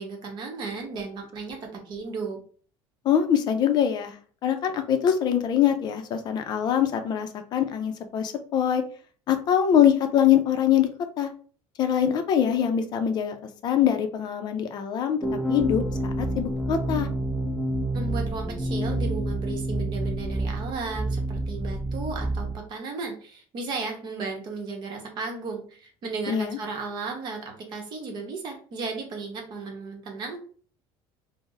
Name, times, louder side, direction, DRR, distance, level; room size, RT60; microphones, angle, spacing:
voice 1, 0.0-2.4 17.9-30.4, right 4 dB, 45° right, 2 dB, 0.9 m, -34 dB
voice 2, 3.0-4.2 4.4-8.8 9.3-10.9 11.2-11.3 11.8-13.4 13.6-15.2 15.5-17.1 26.3-26.6, left 9 dB, 40° left, 7 dB, 0.5 m, -23 dB
sound 1, 15.2-22.5, right 1 dB, 5° right, 0.6 m, -28 dB
2.5 x 2.0 x 3.8 m, 0.43 s
cardioid pair, 140°, 11 cm